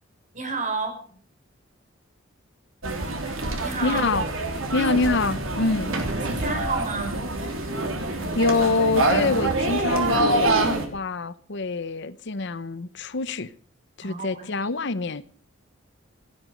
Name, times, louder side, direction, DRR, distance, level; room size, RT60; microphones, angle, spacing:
voice 1, 0.3-1.2 3.6-4.1 4.7-5.0 5.7-5.8 6.1-7.2 14.0-14.7, right 3 dB, 40° right, 5.2 m, -31 dB
sound 1, 2.8-10.9, right 2 dB, 90° right, 3.3 m, -25 dB
voice 2, 3.8-4.2 4.7-5.9 8.3-13.5 14.0-15.2, left 3 dB, 60° left, 0.9 m, -25 dB
17.0 x 12.5 x 6.5 m
head